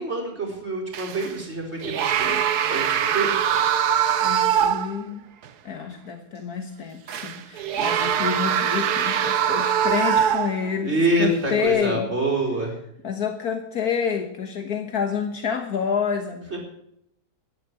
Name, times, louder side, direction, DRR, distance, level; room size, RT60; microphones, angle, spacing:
voice 1, 0.0-2.4 2.7-3.4 7.8-8.2 10.8-12.7 16.5-16.6, right 2 dB, 45° right, -1 dB, 4.8 m, -26 dB
sound 1, 0.9-1.4 1.8-5.0 5.4-5.5 7.1-10.8 11.5-11.7, right 9 dB, 90° right, 1.5 m, -23 dB
voice 2, 4.2-5.2 5.7-12.1 13.0-16.6, left 7 dB, 75° left, 6 dB, 1.8 m, -28 dB
13.5 x 11.0 x 9.4 m, 0.76 s
omnidirectional pair, 1.6 m